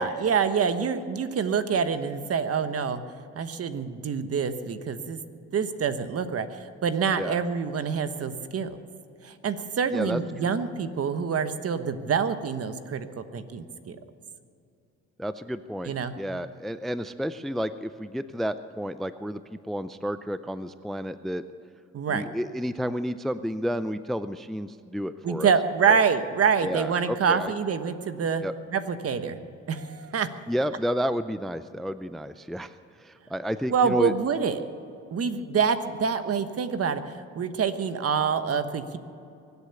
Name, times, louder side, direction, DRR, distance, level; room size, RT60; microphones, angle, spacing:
voice 1, 0.0-3.0 3.3-5.2 5.5-8.8 9.2-14.0 15.9-16.1 21.9-22.2 25.2-28.5 28.7-29.4 29.7-30.3 33.7-34.6 35.1-39.0, right 6 dB, 50° right, 10 dB, 1.2 m, -26 dB
voice 2, 9.9-10.5 15.2-21.4 22.1-25.5 25.9-26.0 26.6-27.5 28.4-28.5 30.5-34.1, equal, ahead, 12 dB, 0.4 m, -31 dB
23.5 x 8.3 x 7.0 m, 2.6 s
cardioid pair, 90°, 30 cm